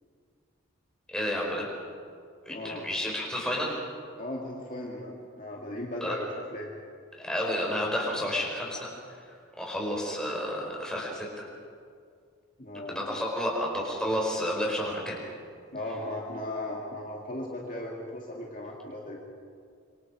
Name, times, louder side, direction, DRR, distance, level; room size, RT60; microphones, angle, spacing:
voice 1, 1.1-1.7 2.4-3.8 6.0-6.1 7.2-8.9 9.6-11.5 12.9-15.1, equal, 5° left, -3 dB, 4.9 m, -31 dB
voice 2, 2.5-2.9 4.2-6.7 12.6-13.2 15.7-19.2, left 1 dB, 40° left, -2 dB, 2.4 m, -37 dB
27.0 x 25.0 x 4.9 m, 2.2 s
head